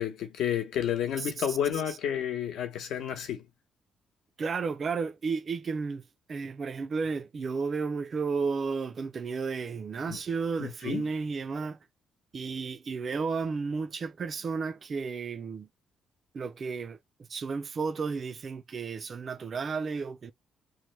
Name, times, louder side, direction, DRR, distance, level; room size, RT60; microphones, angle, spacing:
voice 1, 0.0-3.4 10.1-10.2 10.6-11.1, left 9 dB, 80° left, 0.9 m, -31 dB
voice 2, 1.2-1.6 1.9-2.0 4.4-6.0 6.3-11.8 12.3-15.7 16.3-17.0 17.3-20.3, right 5 dB, 35° right, 0.4 m, -33 dB
3.1 x 2.1 x 3.1 m
cardioid pair, 140°, 0 cm